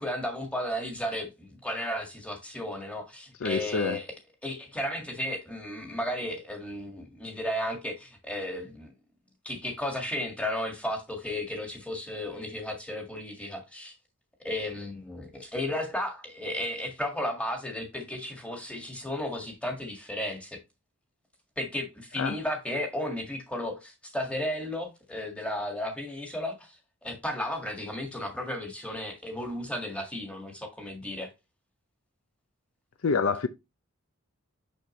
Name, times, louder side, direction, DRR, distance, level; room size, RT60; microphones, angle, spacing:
voice 1, 0.0-4.1 4.4-8.9 9.4-13.9 14.4-20.6 21.6-31.3, left 1 dB, 5° left, 1.7 m, -34 dB
voice 2, 3.4-4.0 22.2-22.4 33.0-33.5, left 5 dB, 65° left, 0.5 m, -27 dB
6.4 x 6.0 x 3.0 m
head